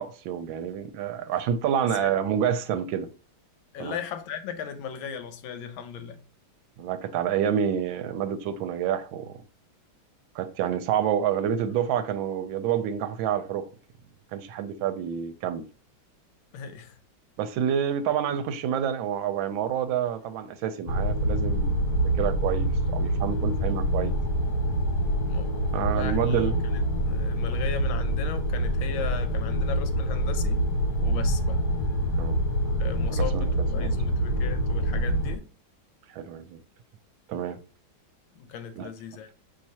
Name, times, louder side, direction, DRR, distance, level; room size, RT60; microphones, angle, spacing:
voice 1, 0.0-3.1 3.8-4.0 6.8-9.3 10.3-13.6 14.3-15.6 17.4-24.1 25.7-26.6 32.2-32.4 33.1-33.9 36.1-36.6 37.3-37.6 38.8-38.9, right 9 dB, 80° right, 1.3 m, -28 dB
voice 2, 3.7-6.2 16.5-17.0 25.3-25.5 25.9-26.5 26.7-26.8 27.1-30.6 31.0-31.6 32.8-35.5 38.3-39.3, left 7 dB, 80° left, 1.4 m, -37 dB
sound 1, 20.9-35.4, right 1 dB, 60° left, 1.3 m, -26 dB
5.7 x 3.1 x 2.7 m
omnidirectional pair, 2.2 m